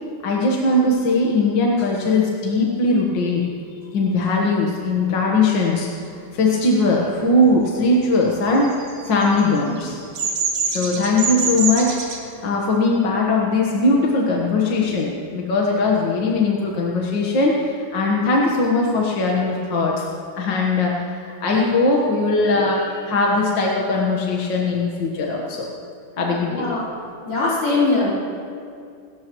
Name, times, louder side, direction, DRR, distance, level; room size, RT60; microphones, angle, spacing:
voice 1, 0.2-3.5 3.9-5.9 6.3-8.7 9.0-10.0 10.7-20.0 20.3-20.9 21.3-25.7 26.2-26.7, left 2 dB, 65° left, -2 dB, 2.1 m, -20 dB
Bird vocalization bird call bird song, 8.5-12.2, right 4 dB, 85° right, 2.6 m, -25 dB
voice 2, 26.5-26.9 27.3-28.2, left 3 dB, 85° left, -6 dB, 5.3 m, -21 dB
27.0 x 14.0 x 3.1 m, 2.4 s
omnidirectional pair, 2.2 m